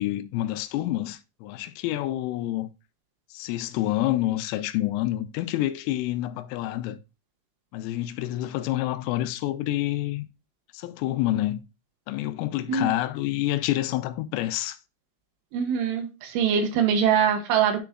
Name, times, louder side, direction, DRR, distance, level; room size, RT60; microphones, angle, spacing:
voice 1, 0.0-2.7 3.3-7.0 7.7-10.3 10.7-11.6 12.1-14.8, left 15 dB, 85° left, 3.2 m, -28 dB
voice 2, 15.5-17.8, right 7 dB, 75° right, 3.6 m, -23 dB
10.0 x 5.1 x 2.3 m
omnidirectional pair, 5.7 m